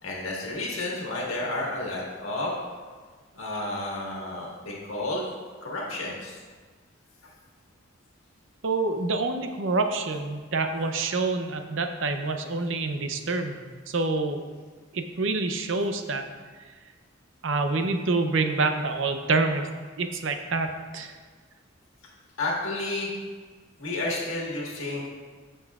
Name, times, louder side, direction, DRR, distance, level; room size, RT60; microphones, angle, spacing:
voice 1, 0.0-2.5 3.3-5.2 5.6-6.4 22.4-23.1 23.8-25.0, left 2 dB, 85° left, -3 dB, 1.7 m, -31 dB
voice 2, 8.6-13.6 13.9-14.4 14.9-16.2 17.4-19.7 20.0-21.1, right 3 dB, 65° right, 6 dB, 0.7 m, -27 dB
14.5 x 5.5 x 2.4 m, 1.5 s
head